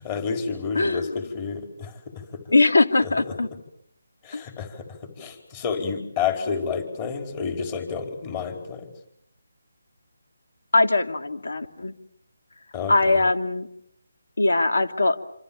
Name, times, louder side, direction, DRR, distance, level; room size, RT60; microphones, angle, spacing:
voice 1, 0.0-2.0 2.3-2.4 3.0-3.1 4.2-8.9 12.7-13.2, left 6 dB, 25° left, 5 dB, 4.8 m, -30 dB
voice 2, 0.7-1.1 2.5-3.5 4.3-4.4 10.7-11.9 12.9-13.7 14.4-15.2, left 2 dB, 80° left, 8 dB, 2.9 m, -21 dB
27.5 x 26.5 x 7.4 m, 0.72 s
figure-of-eight pair, 165°, 0 cm